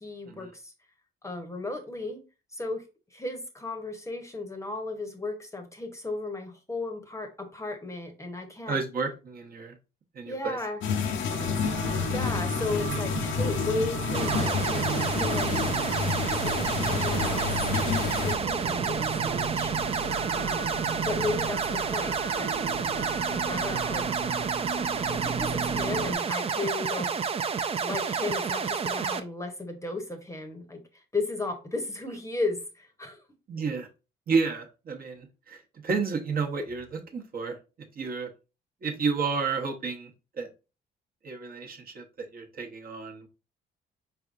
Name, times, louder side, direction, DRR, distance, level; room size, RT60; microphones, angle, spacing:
voice 1, 0.0-0.7 1.2-2.2 2.5-8.8 10.2-10.8 11.8-15.5 16.3-17.5 18.2-19.7 20.3-22.5 22.9-24.2 25.1-27.1 27.8-30.8 31.1-33.2, left 2 dB, 15° left, 0.8 m, -35 dB
voice 2, 8.7-9.8 10.1-10.6 20.3-20.7 33.5-33.9 34.3-38.3 38.8-40.1 40.4-40.5 41.2-43.3, right 4 dB, 50° right, 0.9 m, -31 dB
sound 1, 10.8-18.3, left 7 dB, 70° left, 0.6 m, -30 dB
sound 2, 11.3-26.1, right 5 dB, 75° right, 0.7 m, -35 dB
sound 3, 14.1-29.2, right 6 dB, 30° right, 0.4 m, -30 dB
4.6 x 3.4 x 2.5 m
cardioid pair, 90°, 20 cm